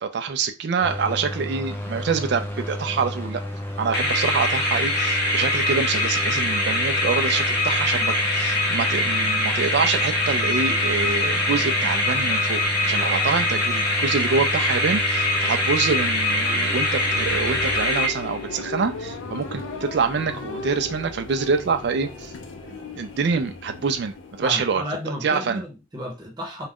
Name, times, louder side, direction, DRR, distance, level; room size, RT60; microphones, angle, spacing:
voice 1, 0.0-3.4 3.8-22.3 22.7-25.6, right 5 dB, 60° right, 0.4 m, -26 dB
sound 1, 0.8-17.8, left 1 dB, 10° left, 0.4 m, -32 dB
sound 2, 3.9-18.6, left 1 dB, 55° left, 0.9 m, -23 dB
sound 3, 16.6-25.2, left 3 dB, 80° left, 0.5 m, -36 dB
voice 2, 24.4-26.7, left 1 dB, 20° right, 0.8 m, -33 dB
2.3 x 2.1 x 3.5 m
head